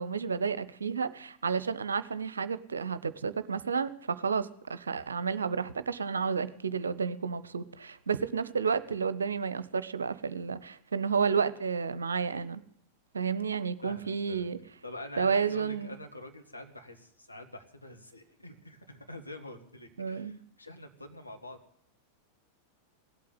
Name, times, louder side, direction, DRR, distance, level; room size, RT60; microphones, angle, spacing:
voice 1, 0.0-12.6 13.1-14.6 15.2-15.9 20.0-20.4, right 6 dB, 70° right, 0.8 m, -31 dB
voice 2, 13.8-14.5 14.8-21.6, left 1 dB, 85° left, 2.1 m, -46 dB
18.0 x 8.5 x 9.5 m
figure-of-eight pair, 90°, 0 cm